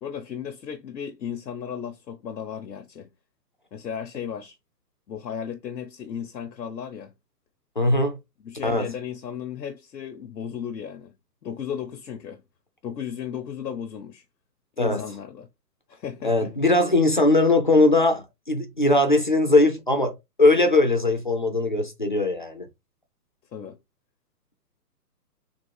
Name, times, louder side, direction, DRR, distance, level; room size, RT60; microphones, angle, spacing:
voice 1, 0.0-3.1 3.7-4.6 5.1-7.1 8.4-11.1 11.4-12.4 12.8-14.2 14.8-15.5 15.9-16.5 23.5-23.8, left 8 dB, 90° left, 0.8 m, -35 dB
voice 2, 7.8-8.2 8.6-8.9 14.8-15.0 16.2-22.7, left 2 dB, 35° left, 0.4 m, -20 dB
3.7 x 2.4 x 4.5 m
hypercardioid pair, 150°, 49 cm